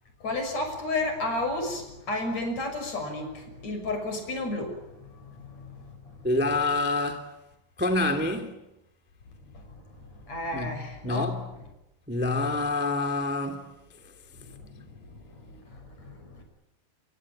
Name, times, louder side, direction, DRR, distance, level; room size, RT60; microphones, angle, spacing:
voice 1, 0.2-6.3 9.5-9.7 9.9-11.7 14.4-16.4, left 2 dB, 40° left, 7.1 m, -33 dB
voice 2, 6.2-7.3 7.8-8.5 10.5-10.8 11.0-11.4 12.1-13.7, left 2 dB, 5° right, 1.6 m, -27 dB
28.0 x 24.0 x 8.9 m
omnidirectional pair, 4.9 m